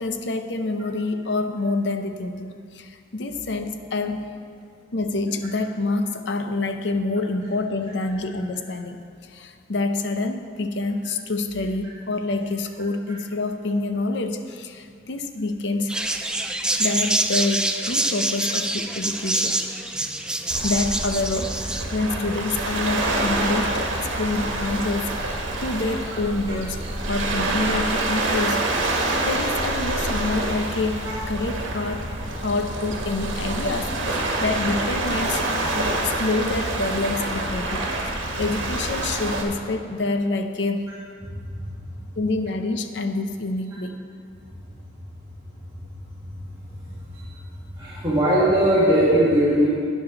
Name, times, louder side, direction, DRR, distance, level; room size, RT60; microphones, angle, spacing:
voice 1, 0.0-4.3 4.9-16.1 16.8-19.6 20.3-21.6 21.9-26.8 27.1-28.9 29.2-40.8 42.2-44.0, left 2 dB, 65° left, 7 dB, 0.7 m, -27 dB
sound 1, 15.9-21.8, right 1 dB, 5° right, 0.4 m, -26 dB
Waves surf, 20.5-39.4, right 2 dB, 80° right, 1.5 m, -27 dB
voice 2, 47.7-49.7, equal, 20° right, -11 dB, 2.0 m, -19 dB
11.5 x 9.2 x 3.9 m, 2.2 s
head